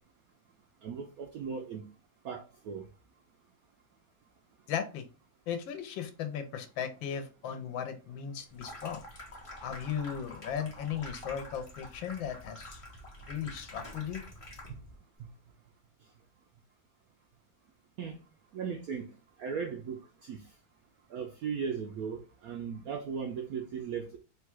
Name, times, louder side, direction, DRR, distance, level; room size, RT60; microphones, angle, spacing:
voice 1, 0.8-1.9 2.2-2.9 14.7-14.8 15.2-15.3 18.0-18.2 18.5-20.6 21.1-24.2, right 6 dB, 75° right, 0.8 m, -37 dB
voice 2, 4.7-5.1 5.5-9.0 9.6-12.8 13.3-14.2, left 8 dB, 85° left, 1.4 m, -36 dB
Water tap faucet / Sink (filling or washing), 8.5-15.0, left 1 dB, 35° left, 0.5 m, -47 dB
3.7 x 2.3 x 4.5 m
omnidirectional pair, 2.1 m